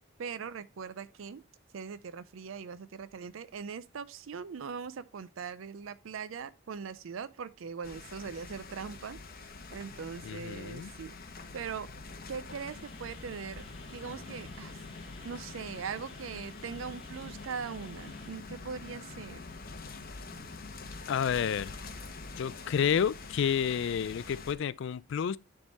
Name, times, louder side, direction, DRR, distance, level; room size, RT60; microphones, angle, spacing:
voice 1, 0.2-1.4 1.7-9.2 9.7-11.1 11.5-11.9 12.3-13.6 13.9-14.8 15.2-19.4, right 6 dB, 75° right, 0.4 m, -41 dB
sound 1, 7.8-24.5, left 3 dB, 50° left, 1.1 m, -45 dB
voice 2, 10.2-10.9 21.1-21.7 22.4-25.4, left 8 dB, 65° left, 0.3 m, -30 dB
sound 2, 12.5-18.3, left 3 dB, 30° left, 2.1 m, -56 dB
10.0 x 3.6 x 4.0 m
head